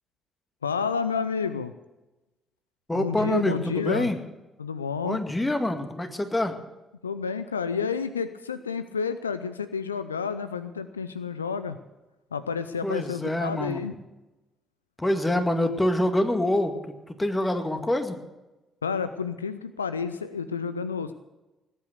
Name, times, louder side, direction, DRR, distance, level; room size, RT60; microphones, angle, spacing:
voice 1, 0.6-1.7 3.0-4.1 4.6-5.2 7.0-11.8 12.3-14.0 18.8-21.1, left 6 dB, 90° left, 13 dB, 0.4 m, -30 dB
voice 2, 2.9-4.2 5.0-6.5 12.8-13.8 15.0-18.2, left 1 dB, 15° left, 6 dB, 2.0 m, -26 dB
19.0 x 8.9 x 6.6 m, 1.0 s
figure-of-eight pair, 45°, 0 cm